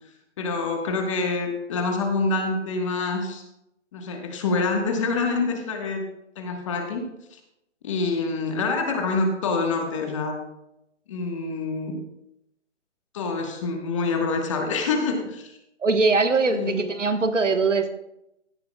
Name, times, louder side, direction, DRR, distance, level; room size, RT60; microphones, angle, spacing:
voice 1, 0.4-3.4 3.9-6.0 6.4-7.0 7.3-7.4 7.8-10.4 11.1-11.9 13.1-15.6 16.5-16.8, left 3 dB, 25° left, 3 dB, 1.4 m, -26 dB
voice 2, 15.8-17.9, right 3 dB, 85° right, 8 dB, 1.3 m, -21 dB
16.5 x 9.6 x 2.3 m, 0.86 s
figure-of-eight pair, 155°, 36 cm